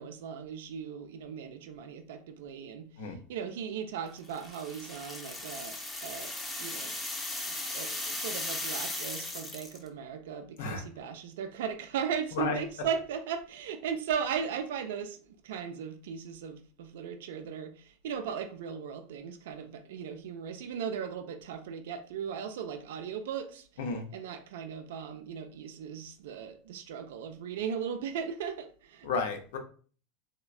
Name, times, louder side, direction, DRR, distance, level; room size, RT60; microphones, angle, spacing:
voice 1, 0.0-6.3 6.6-7.0 7.5-23.7 24.1-29.1, right 7 dB, 75° right, 0.3 m, -37 dB
sound 1, 4.3-9.9, left 2 dB, 15° left, 0.6 m, -37 dB
voice 2, 29.0-29.6, left 4 dB, 75° left, 0.6 m, -32 dB
3.1 x 2.1 x 2.3 m
hypercardioid pair, 95°, 0 cm